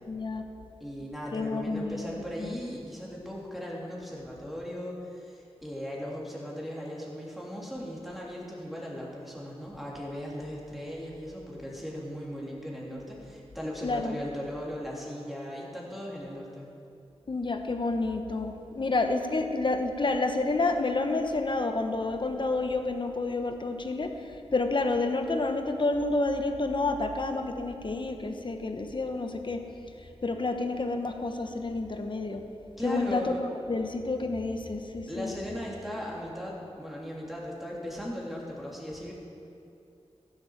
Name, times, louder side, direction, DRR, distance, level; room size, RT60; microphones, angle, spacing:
voice 1, 0.0-0.4 1.3-2.6 13.8-14.2 17.3-24.1 24.5-29.6 30.2-32.4 32.8-33.3 33.7-35.3, left 3 dB, 45° left, 6 dB, 1.1 m, -29 dB
voice 2, 0.8-16.7 32.8-33.4 35.1-39.1, equal, ahead, -4 dB, 3.1 m, -38 dB
15.0 x 8.0 x 7.1 m, 2.7 s
wide cardioid pair, 80°, 11 cm